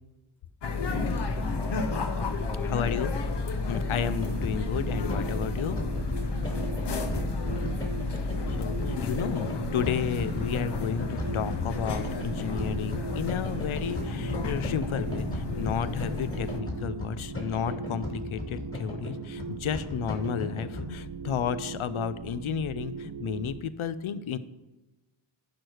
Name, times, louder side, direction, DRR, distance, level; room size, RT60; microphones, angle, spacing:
sound 1, 0.6-16.6, left 3 dB, 60° left, 0.8 m, -32 dB
voice 1, 1.2-2.9 6.5-7.5, equal, 5° left, 9 dB, 0.5 m, -43 dB
voice 2, 2.6-3.1 3.7-5.8 8.2-24.4, left 8 dB, 85° left, 14 dB, 0.6 m, -32 dB
sound 2, 3.3-20.8, left 2 dB, 25° left, 2.2 m, -37 dB
sound 3, 3.8-23.6, right 5 dB, 55° right, 0.6 m, -40 dB
10.5 x 4.8 x 4.8 m, 1.1 s
wide cardioid pair, 80°, 48 cm